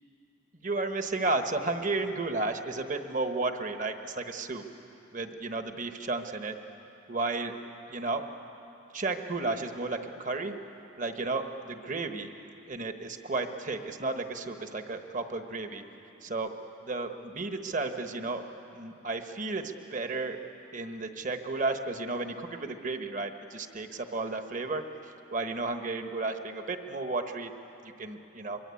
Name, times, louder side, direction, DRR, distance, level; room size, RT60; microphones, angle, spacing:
voice 1, 0.6-4.6 5.1-6.5 7.1-7.5 7.9-8.2 8.9-10.5 11.0-12.3 12.7-15.8 16.2-16.5 16.9-18.4 18.7-20.4 20.7-24.8 25.3-27.5 28.0-28.6, right 3 dB, 40° right, 6 dB, 1.3 m, -33 dB
24.0 x 23.5 x 8.5 m, 3.0 s
head